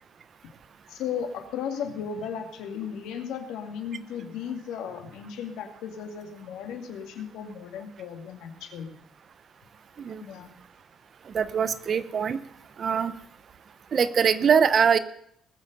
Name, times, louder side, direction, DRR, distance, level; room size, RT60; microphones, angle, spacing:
voice 1, 0.9-9.0 10.2-10.6, left 7 dB, 80° left, 5 dB, 2.2 m, -35 dB
voice 2, 11.3-12.4 12.8-13.1 13.9-15.0, right 7 dB, 35° right, 14 dB, 0.7 m, -22 dB
20.0 x 7.6 x 6.7 m, 0.68 s
cardioid pair, 165°, 0 cm